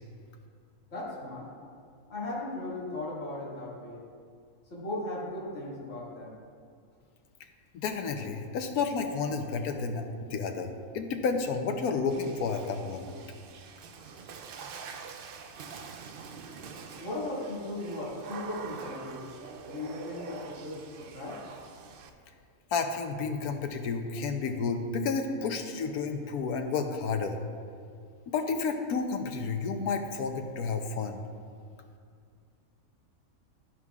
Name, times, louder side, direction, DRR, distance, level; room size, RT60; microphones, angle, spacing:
voice 1, 0.9-1.5 2.1-4.0 4.7-6.4 17.0-19.3 19.6-21.4, left 1 dB, 55° left, -7 dB, 2.4 m, -37 dB
voice 2, 7.7-13.2 22.7-27.4 28.3-31.2, left 4 dB, 85° left, 5 dB, 1.3 m, -31 dB
Water / Splash splatter, 12.1-22.1, right 5 dB, 60° right, 0.5 m, -45 dB
11.5 x 10.5 x 2.4 m, 2.2 s
omnidirectional pair, 1.5 m